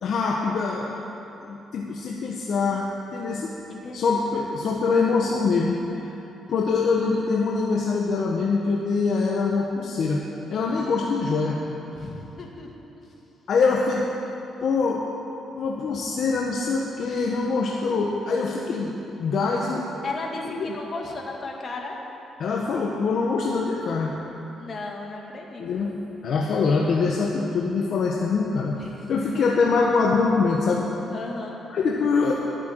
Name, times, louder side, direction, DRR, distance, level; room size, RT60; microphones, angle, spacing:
voice 1, 0.0-0.9 1.4-3.5 3.9-6.1 6.5-10.2 10.5-11.6 13.5-14.1 14.6-15.0 15.5-18.9 19.2-19.9 20.4-20.7 22.4-24.2 25.6-25.9 26.2-28.8 29.1-30.9 31.7-32.3, left 4 dB, 60° left, -1 dB, 1.2 m, -24 dB
voice 2, 3.7-4.2 10.7-10.9 11.9-12.7 13.0-13.1 17.1-17.3 20.0-22.0 24.6-25.9 28.8-29.4 31.1-31.6, left 3 dB, 45° left, 0 dB, 2.1 m, -36 dB
12.5 x 8.2 x 7.9 m, 2.9 s
cardioid pair, 90°, 0 cm